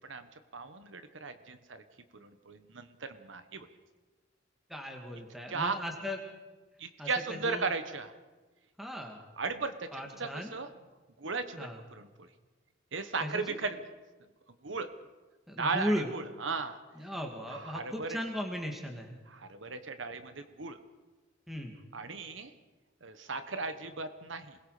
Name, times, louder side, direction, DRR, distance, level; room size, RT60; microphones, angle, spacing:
voice 1, 0.5-1.8 2.2-3.7 5.5-5.8 6.8-8.1 9.4-10.7 11.2-12.3 12.9-13.8 14.6-14.9 15.6-16.8 17.5-18.2 19.3-20.8 21.9-22.5 23.0-24.6, right 4 dB, 75° right, 9 dB, 1.3 m, -36 dB
voice 2, 4.7-6.2 7.0-7.1 7.4-7.7 8.8-9.2 9.9-10.5 11.6-11.8 13.2-13.6 15.5-16.1 17.0-19.2 21.5-21.7, equal, ahead, 1 dB, 2.3 m, -37 dB
28.0 x 21.5 x 5.0 m, 1.3 s
head